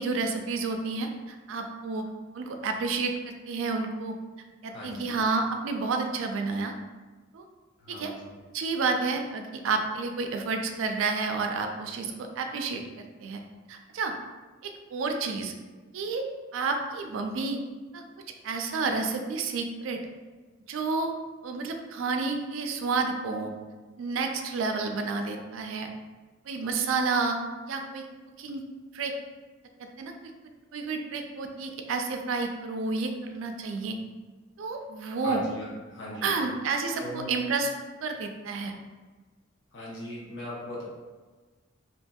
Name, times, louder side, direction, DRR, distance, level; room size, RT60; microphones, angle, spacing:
voice 1, 0.0-2.1 2.3-4.2 4.6-6.7 7.3-7.4 7.9-8.1 8.5-13.4 13.7-14.1 14.6-15.5 15.9-16.2 16.5-17.6 17.9-18.0 18.4-20.0 20.7-21.1 21.4-23.5 24.0-25.9 26.5-27.4 27.7-28.1 28.4-28.6 28.9-29.1 29.8-30.3 30.7-34.0 34.6-35.4 36.2-37.7 38.0-38.7, right 4 dB, 85° right, 4 dB, 0.3 m, -30 dB
voice 2, 4.7-5.2 7.8-8.3 35.2-36.3 37.0-37.4 39.7-40.8, equal, 70° left, -5 dB, 0.8 m, -38 dB
2.8 x 2.6 x 2.2 m, 1.3 s
head